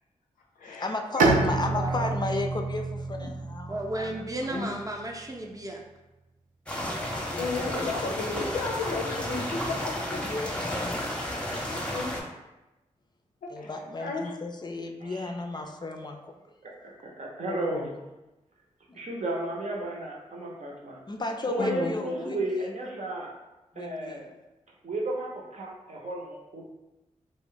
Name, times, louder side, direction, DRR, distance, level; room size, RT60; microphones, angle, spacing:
voice 1, 0.8-4.6 7.2-7.9 8.7-8.8 9.1-9.2 10.1-11.9 13.5-16.3 18.9-19.0 21.1-22.7 23.7-24.3, left 2 dB, 30° left, 4 dB, 0.4 m, -35 dB
Bowed string instrument, 1.2-4.8, right 3 dB, 85° right, 0.4 m, -28 dB
voice 2, 1.6-2.1 3.7-5.8, right 1 dB, 25° right, 1 dB, 0.6 m, -34 dB
sound 1, 6.7-12.2, equal, 10° left, 0.7 m, -32 dB
voice 3, 7.4-9.9 11.9-12.1 13.4-13.7 14.0-14.3 17.5-17.9 21.6-21.9, left 3 dB, 90° left, -1 dB, 0.5 m, -33 dB
voice 4, 16.8-17.8 18.9-21.0 21.5-23.3 23.8-24.2 24.8-26.7, right 2 dB, 60° right, -2 dB, 0.7 m, -33 dB
2.4 x 2.1 x 3.7 m, 1.0 s
cardioid pair, 45°, 13 cm